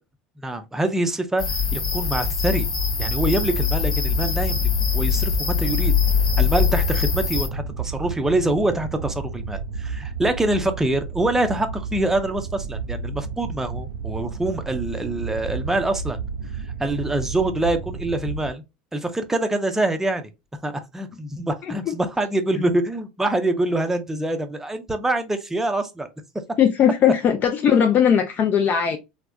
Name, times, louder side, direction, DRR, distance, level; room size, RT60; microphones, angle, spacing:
voice 1, 0.4-1.4 1.7-2.7 3.0-5.9 6.4-16.2 16.8-18.6 18.9-20.3 20.6-26.1, right 1 dB, 10° right, 0.5 m, -25 dB
sound 1, 1.4-7.5, left 6 dB, 85° left, 0.8 m, -22 dB
sound 2, 2.9-18.5, right 5 dB, 80° right, 0.5 m, -32 dB
voice 2, 26.6-29.0, left 8 dB, 40° left, 0.4 m, -18 dB
3.3 x 2.1 x 2.3 m
hypercardioid pair, 85°, 4 cm